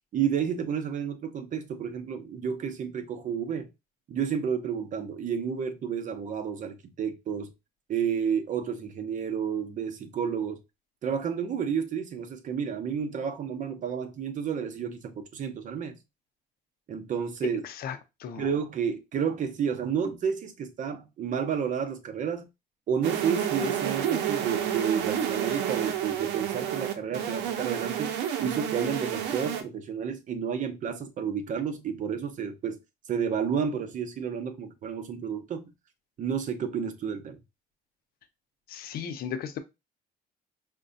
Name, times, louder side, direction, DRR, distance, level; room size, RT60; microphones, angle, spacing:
voice 1, 0.1-3.7 4.1-7.5 7.9-10.6 11.0-16.0 16.9-17.6 18.4-22.5 22.9-32.8 33.1-35.7 36.2-37.4, right 7 dB, 50° right, 0.7 m, -31 dB
voice 2, 17.6-18.5 38.7-39.6, left 8 dB, 65° left, 0.6 m, -36 dB
sound 1, 23.0-29.6, right 10 dB, 85° right, 0.6 m, -30 dB
4.7 x 2.2 x 2.5 m
cardioid pair, 110°, 17 cm